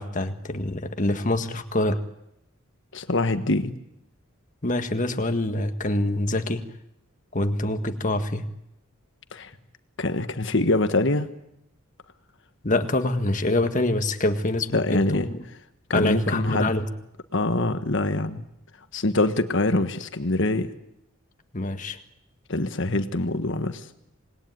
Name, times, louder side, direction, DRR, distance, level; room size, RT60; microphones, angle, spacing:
voice 1, 0.0-2.0 4.6-6.6 7.3-8.5 12.6-15.0 15.3-15.4 15.9-16.9 21.5-22.0, left 2 dB, 35° left, 7 dB, 1.7 m, -25 dB
voice 2, 2.9-3.8 9.3-9.5 10.0-11.3 14.7-15.3 15.9-16.7 17.3-18.4 18.9-20.7 22.5-23.9, left 2 dB, 55° left, 9 dB, 1.5 m, -24 dB
26.5 x 20.5 x 9.5 m, 0.82 s
head